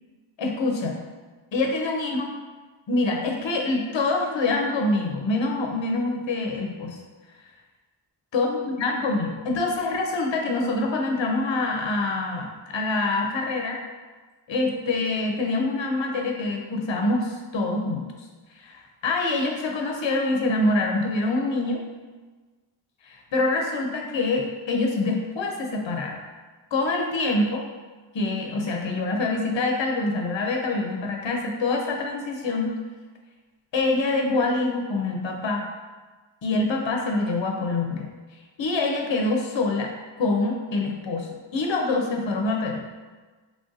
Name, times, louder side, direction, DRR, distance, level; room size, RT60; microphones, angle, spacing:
voice 1, 0.4-1.0 1.5-2.3 2.9-7.0 8.3-13.8 14.5-18.1 18.6-21.8 23.0-26.2 26.7-27.6 28.1-32.8 33.7-35.7 36.4-38.1 38.6-39.9 40.2-42.8, left 2 dB, 65° left, 1 dB, 0.7 m, -25 dB
3.4 x 2.5 x 3.9 m, 1.3 s
wide cardioid pair, 55°, 48 cm